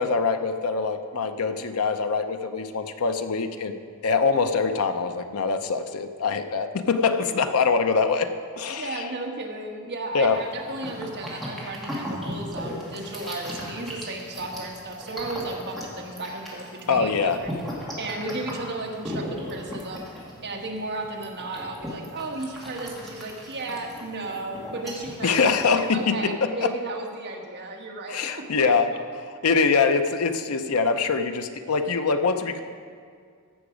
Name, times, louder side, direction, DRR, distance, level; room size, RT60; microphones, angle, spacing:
voice 1, 0.0-3.8 4.0-8.3 8.6-9.0 10.1-10.4 16.9-17.4 25.2-26.7 28.1-28.9 29.2-32.6, left 5 dB, 90° left, 8 dB, 0.7 m, -24 dB
voice 2, 8.7-17.5 18.0-20.1 20.4-25.5 25.7-28.9, right 2 dB, 55° right, 0 dB, 1.3 m, -34 dB
sound 1, 10.3-26.1, equal, ahead, 2.2 m, -37 dB
15.0 x 6.1 x 5.0 m, 2.1 s
head